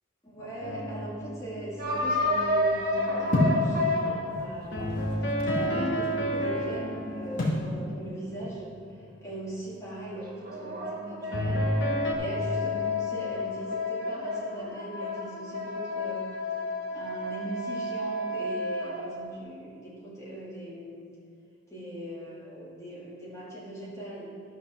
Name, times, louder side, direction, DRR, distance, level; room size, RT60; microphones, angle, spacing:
voice 1, 0.3-5.2 5.5-8.7 9.2-11.8 12.2-16.4 16.9-21.0 21.7-24.3, right 1 dB, 15° left, -6 dB, 2.4 m, -39 dB
sound 1, 0.6-2.9 4.7-8.6 11.3-12.1, equal, 60° left, 1.2 m, -31 dB
sound 2, 1.8-5.4 10.1-19.3, left 2 dB, 45° right, 1.2 m, -31 dB
sound 3, 3.3-3.7 4.5-5.7 7.4-7.7, left 1 dB, 40° left, 2.3 m, -26 dB
12.5 x 5.4 x 6.3 m, 2.3 s
head